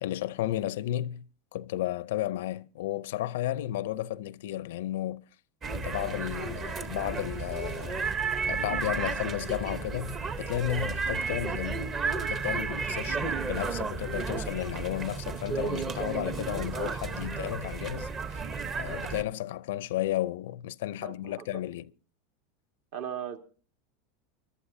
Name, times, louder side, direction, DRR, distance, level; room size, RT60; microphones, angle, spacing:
voice 1, 0.0-1.3 1.5-5.2 5.7-8.2 8.5-18.4 18.8-21.9, left 13 dB, 80° left, 0.5 m, -33 dB
sound 1, 5.6-19.2, right 5 dB, 25° right, 0.9 m, -33 dB
voice 2, 21.0-21.6 22.9-23.4, right 9 dB, 60° right, 1.8 m, -38 dB
25.0 x 12.0 x 2.7 m
supercardioid pair, 150°, 0 cm